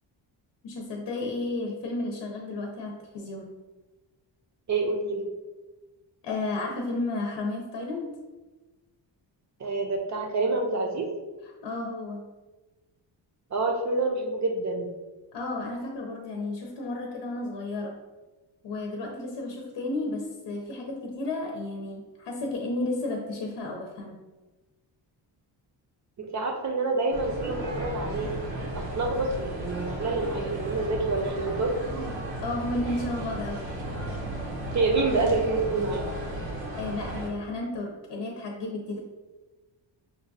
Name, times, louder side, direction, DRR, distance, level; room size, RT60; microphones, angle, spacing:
voice 1, 0.6-3.5 6.2-8.2 11.6-12.3 15.3-18.0 18.6-24.2 32.4-33.7 35.8-35.9 36.7-39.0, left 2 dB, 65° left, 0 dB, 0.7 m, -32 dB
voice 2, 4.7-5.3 9.6-11.1 13.5-14.9 26.2-28.3 28.7-31.7 34.7-36.1, right 3 dB, 40° right, 3 dB, 0.6 m, -27 dB
sound 1, 27.1-37.3, right 1 dB, 80° right, 0.9 m, -34 dB
5.2 x 2.3 x 2.6 m, 1.2 s
cardioid pair, 105°, 45 cm